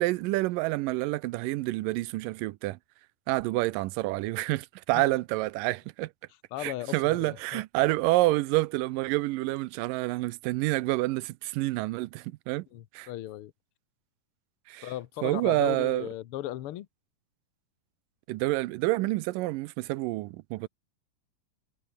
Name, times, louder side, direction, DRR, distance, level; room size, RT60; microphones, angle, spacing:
voice 1, 0.0-2.8 3.3-6.1 6.6-12.7 12.9-13.1 14.7-14.9 15.2-16.1 18.3-20.7, right 19 dB, 85° right, 2.3 m, -28 dB
voice 2, 6.5-7.6 12.7-13.5 14.8-16.9, left 14 dB, 80° left, 1.3 m, -37 dB
omnidirectional pair, 3.9 m